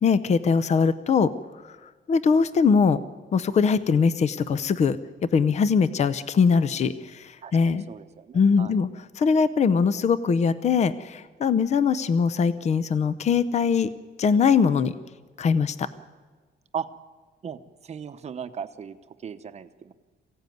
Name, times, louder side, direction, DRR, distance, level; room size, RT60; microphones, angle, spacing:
voice 1, 0.0-1.3 1.6-1.8 2.1-3.0 3.3-5.0 5.3-7.8 8.3-8.9 9.2-13.9 14.2-15.0 15.4-15.9, left 5 dB, 40° left, 14 dB, 0.7 m, -21 dB
voice 2, 7.4-8.7 16.7-16.9 17.4-19.9, right 7 dB, 35° right, 10 dB, 0.9 m, -37 dB
23.0 x 16.0 x 9.4 m, 1.4 s
cardioid pair, 165°, 18 cm